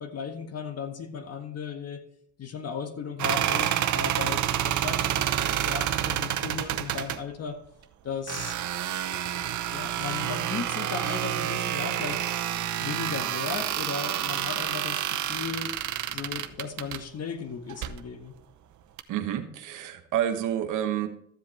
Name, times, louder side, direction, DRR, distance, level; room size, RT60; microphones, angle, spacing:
voice 1, 0.0-2.0 2.4-5.3 5.6-7.6 8.0-8.6 9.7-12.2 12.8-15.0 15.3-15.7 16.1-18.3, left 6 dB, 55° left, 6 dB, 1.6 m, -36 dB
sound 1, 3.2-7.2 8.3-17.0 17.7-18.0 19.0-19.1, right 11 dB, 70° right, 0.8 m, -29 dB
voice 2, 19.1-21.1, right 10 dB, 90° right, 7 dB, 1.2 m, -29 dB
13.5 x 7.7 x 3.3 m, 0.68 s
cardioid pair, 90°, 30 cm